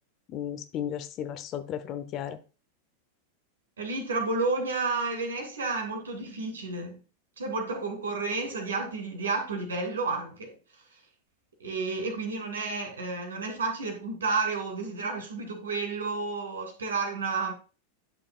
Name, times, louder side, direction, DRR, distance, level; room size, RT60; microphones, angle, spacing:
voice 1, 0.3-2.4, left 10 dB, 35° left, 11 dB, 0.9 m, -34 dB
voice 2, 3.8-7.0 7.4-10.5 11.6-17.5, right 3 dB, 70° right, 3 dB, 2.7 m, -31 dB
10.5 x 6.9 x 2.3 m, 0.34 s
figure-of-eight pair, 90°, 0 cm